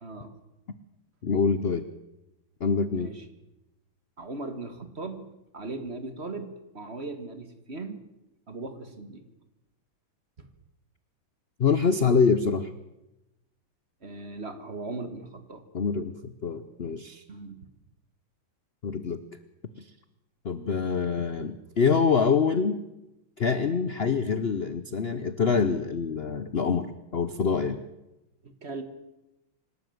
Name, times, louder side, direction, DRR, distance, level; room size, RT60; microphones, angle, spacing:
voice 1, 0.0-0.4 2.9-3.3 4.2-8.0 8.5-9.3 10.4-10.5 14.0-15.6 17.3-17.7 28.4-28.8, right 3 dB, 35° right, 9 dB, 1.8 m, -38 dB
voice 2, 1.2-1.9 2.6-3.1 11.6-12.7 15.7-17.2 18.8-19.2 20.4-22.8 23.4-27.8, left 5 dB, 60° left, 12 dB, 0.6 m, -25 dB
26.0 x 12.5 x 7.9 m, 0.96 s
omnidirectional pair, 2.2 m